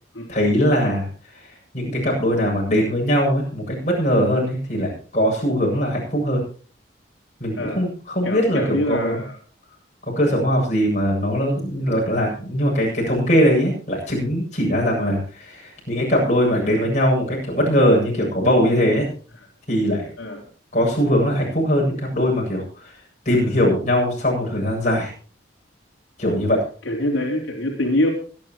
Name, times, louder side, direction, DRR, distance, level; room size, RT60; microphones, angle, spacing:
voice 1, 0.3-1.1 1.7-6.4 7.4-8.6 8.9-9.2 10.2-19.1 19.7-20.1 20.7-22.9 23.2-25.1 26.2-26.6, equal, 40° left, -1 dB, 7.9 m, -20 dB
voice 2, 8.2-9.4 15.0-15.2 20.2-20.4 26.8-28.1, left 1 dB, 90° left, 0 dB, 3.7 m, -24 dB
24.5 x 10.5 x 3.1 m, 0.40 s
head